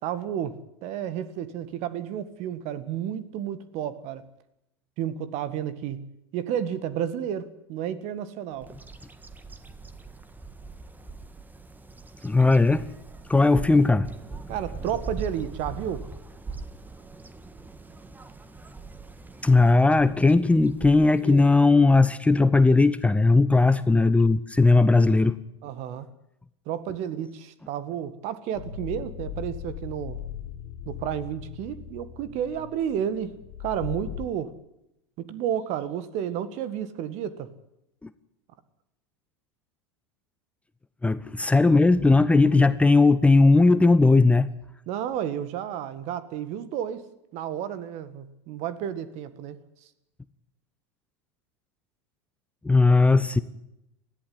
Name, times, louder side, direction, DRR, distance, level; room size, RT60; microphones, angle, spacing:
voice 1, 0.0-4.2 5.0-6.1 6.3-8.7 14.5-16.1 21.2-21.4 25.6-26.1 26.7-30.2 30.9-34.5 35.2-37.5 44.9-47.1 47.3-49.6, right 9 dB, 50° right, 14 dB, 1.8 m, -31 dB
Bird vocalization bird call bird song, 8.6-21.9, right 4 dB, 10° right, 1.5 m, -41 dB
voice 2, 12.2-12.9 13.3-14.1 19.4-25.4 38.0-38.1 41.0-44.5 52.6-53.4, left 3 dB, 10° left, 13 dB, 0.9 m, -18 dB
sound 1, 28.5-34.3, left 9 dB, 65° left, 1.8 m, -39 dB
20.0 x 14.0 x 9.6 m, 0.85 s
hypercardioid pair, 90°, 15 cm